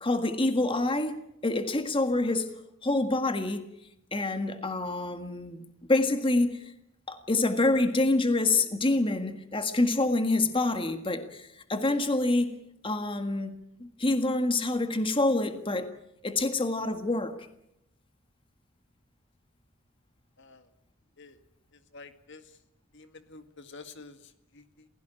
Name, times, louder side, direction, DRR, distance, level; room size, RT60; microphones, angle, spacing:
voice 1, 0.0-2.5 2.8-3.6 4.1-5.6 5.9-6.7 7.1-13.5 13.8-15.9 16.2-17.4, left 2 dB, 25° left, 8 dB, 1.7 m, -27 dB
voice 2, 20.4-20.7 21.2-21.4 21.7-22.6 22.9-24.9, left 3 dB, 60° left, 9 dB, 1.9 m, -50 dB
27.5 x 17.0 x 9.0 m, 0.80 s
head